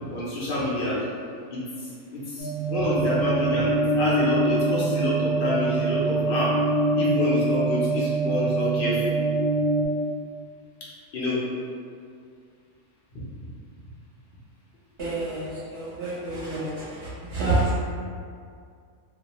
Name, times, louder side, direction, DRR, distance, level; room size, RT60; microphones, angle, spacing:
voice 1, 0.1-1.0 1.5-6.6 6.9-9.1 11.1-11.4, left 1 dB, 65° left, -7 dB, 0.5 m, -27 dB
sound 1, 2.4-9.9, right 2 dB, 80° left, 1.0 m, -24 dB
voice 2, 15.0-17.8, right 2 dB, 50° right, -11 dB, 0.8 m, -28 dB
2.4 x 2.2 x 2.9 m, 2.2 s
omnidirectional pair, 1.5 m